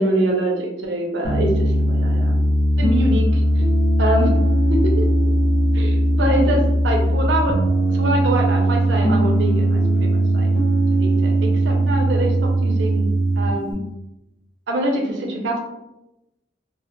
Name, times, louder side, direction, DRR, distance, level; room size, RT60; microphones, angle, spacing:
voice 1, 0.0-2.4 2.8-3.4 4.0-4.3 4.7-5.1 5.7-7.6 7.9-10.5 11.0-12.3 12.6-13.9 14.7-15.6, right 1 dB, 75° right, 0 dB, 0.5 m, -24 dB
Piano, 1.2-13.7, right 1 dB, 55° left, 0.7 m, -19 dB
2.1 x 2.0 x 2.8 m, 0.93 s
head